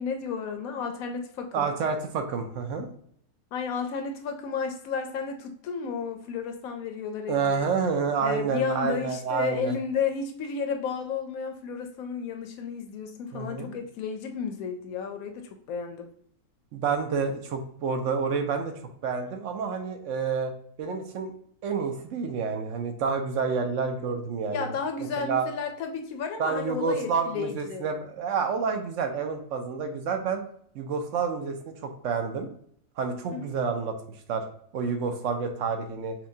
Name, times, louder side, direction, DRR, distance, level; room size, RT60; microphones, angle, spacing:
voice 1, 0.0-1.7 3.5-7.7 8.2-16.1 24.5-27.9 33.3-33.4, left 6 dB, 75° left, 5 dB, 1.0 m, -32 dB
voice 2, 1.5-2.9 7.3-9.7 13.3-13.7 16.7-18.7 19.0-20.5 20.8-21.3 21.6-24.7 25.2-25.5 26.4-30.4 30.7-32.5 33.0-34.0 34.3-34.4 34.7-36.2, right 5 dB, 65° right, 5 dB, 0.9 m, -29 dB
5.6 x 2.2 x 2.6 m, 0.64 s
omnidirectional pair, 1.6 m